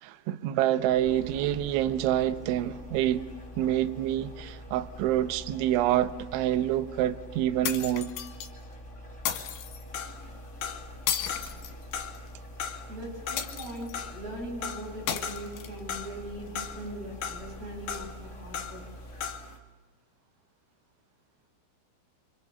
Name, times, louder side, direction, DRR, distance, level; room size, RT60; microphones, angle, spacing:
voice 1, 0.0-3.3 3.6-8.1, right 12 dB, 75° right, 3.2 m, -27 dB
sound 1, 0.7-19.7, equal, 15° right, 4.0 m, -45 dB
sound 2, 7.6-8.5 9.3-9.8 11.1-12.3 13.4-14.0 15.1-16.0, left 10 dB, 75° left, 4.1 m, -33 dB
sound 3, 9.9-11.0 11.3-12.2 12.6-15.6 15.9-16.9 17.2-18.9 19.1-19.6, left 7 dB, 55° left, 2.8 m, -38 dB
voice 2, 12.9-18.8, right 1 dB, 50° right, 9.4 m, -40 dB
28.0 x 25.5 x 7.0 m
omnidirectional pair, 5.8 m